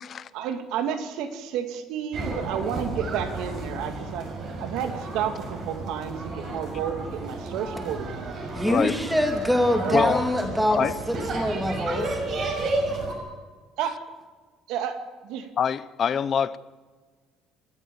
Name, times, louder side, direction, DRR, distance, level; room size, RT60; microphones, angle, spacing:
voice 1, 0.3-4.3 4.6-8.7 9.8-10.2 13.8-14.1 14.7-15.5, right 8 dB, 80° right, 2.4 m, -31 dB
sound 1, 2.1-13.1, right 2 dB, 45° right, 6.5 m, -32 dB
voice 2, 8.5-10.8 11.1-12.2, left 1 dB, 5° right, 2.7 m, -24 dB
voice 3, 15.6-16.6, left 7 dB, 35° left, 0.8 m, -25 dB
29.5 x 14.0 x 7.3 m
cardioid pair, 170°, 0 cm